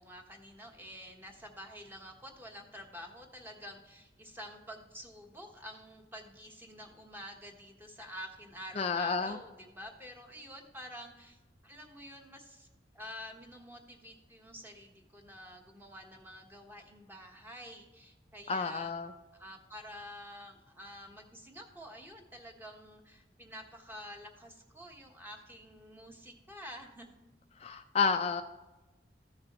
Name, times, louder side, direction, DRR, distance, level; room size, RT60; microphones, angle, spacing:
voice 1, 0.0-11.4 11.6-12.7 12.9-18.9 19.3-27.2, equal, 10° right, 2 dB, 1.2 m, -48 dB
voice 2, 8.8-9.4 18.5-19.1 27.6-28.4, left 5 dB, 35° left, 6 dB, 0.4 m, -30 dB
14.5 x 6.6 x 3.0 m, 1.1 s
head